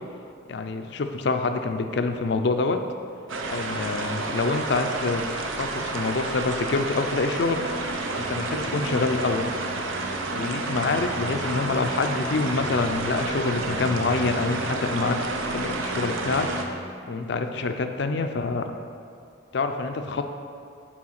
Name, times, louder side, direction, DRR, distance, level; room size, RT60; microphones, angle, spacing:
voice 1, 0.5-2.8 3.5-5.2 5.5-7.6 8.2-9.5 10.3-15.2 15.5-16.5 17.0-18.6 19.5-20.2, left 3 dB, 60° left, 7 dB, 0.5 m, -26 dB
sound 1, 3.3-16.6, right 2 dB, 90° right, 0.7 m, -30 dB
sound 2, 7.6-16.8, right 1 dB, 55° right, 0.9 m, -37 dB
6.2 x 4.7 x 5.9 m, 2.5 s
head